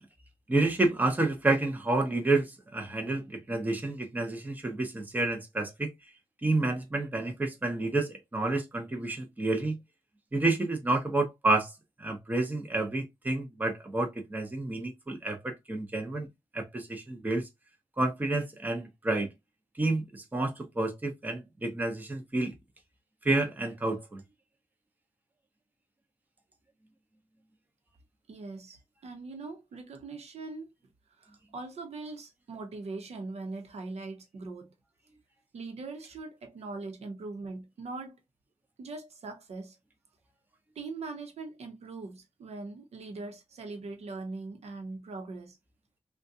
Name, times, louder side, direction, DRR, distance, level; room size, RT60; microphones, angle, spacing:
voice 1, 0.5-5.9 6.4-9.8 10.3-11.7 12.0-16.3 16.5-17.5 18.0-19.3 19.8-22.5 23.2-24.2, right 2 dB, 15° right, 0.7 m, -29 dB
voice 2, 28.3-30.7 31.2-34.7 35.5-38.2 38.8-39.8 40.7-45.6, right 3 dB, 80° right, 0.8 m, -41 dB
3.7 x 2.3 x 2.7 m
wide cardioid pair, 165°, 11 cm